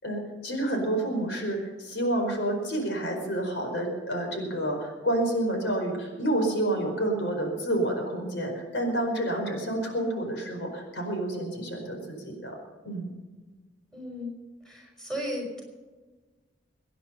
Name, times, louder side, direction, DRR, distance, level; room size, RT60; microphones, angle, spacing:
voice 1, 0.0-12.5 12.8-13.1, right 1 dB, 75° left, 2 dB, 4.8 m, -29 dB
voice 2, 13.9-14.3 14.7-15.6, equal, 5° left, -1 dB, 5.6 m, -35 dB
24.5 x 10.0 x 5.6 m, 1.3 s
head